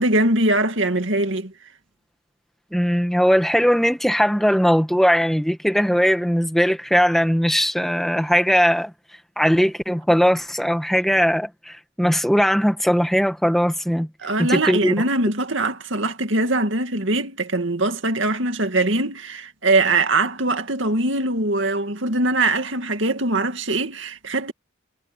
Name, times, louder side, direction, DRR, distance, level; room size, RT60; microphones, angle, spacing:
voice 1, 0.0-1.5 14.2-24.5, right 2 dB, 65° right, 2.3 m, -22 dB
voice 2, 2.7-8.9 9.4-14.1 14.4-14.9, equal, ahead, 1.5 m, -19 dB
head